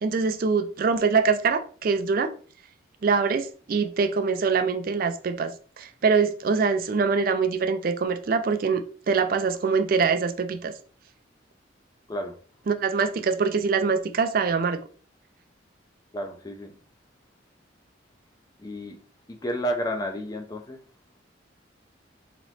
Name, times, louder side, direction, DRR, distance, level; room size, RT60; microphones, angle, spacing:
voice 1, 0.0-2.3 3.0-5.5 5.8-10.7 12.7-14.8, right 5 dB, 50° right, 0.4 m, -24 dB
voice 2, 16.1-16.7 18.6-19.0 19.3-20.8, equal, 20° left, 0.4 m, -31 dB
4.0 x 2.9 x 3.1 m
head